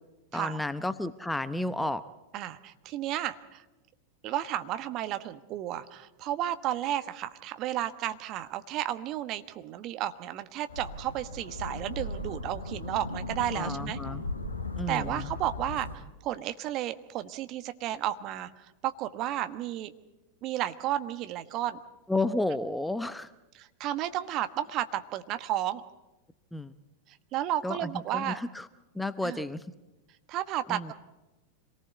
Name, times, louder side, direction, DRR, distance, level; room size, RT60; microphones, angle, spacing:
voice 1, 0.3-2.0 13.5-14.2 14.8-15.3 22.1-23.3 26.5-26.7 27.6-28.7 28.9-29.7 30.7-30.9, left 2 dB, 5° left, 14 dB, 0.8 m, -32 dB
voice 2, 2.3-3.6 4.2-14.0 14.9-18.5 18.8-19.9 20.4-21.8 23.6-25.8 27.1-28.4 29.2-29.4 30.3-30.9, right 12 dB, 35° right, 11 dB, 1.3 m, -33 dB
sound 1, 10.7-15.9, left 2 dB, 75° left, 2.5 m, -37 dB
26.5 x 19.0 x 8.1 m, 1.1 s
figure-of-eight pair, 90°, 0 cm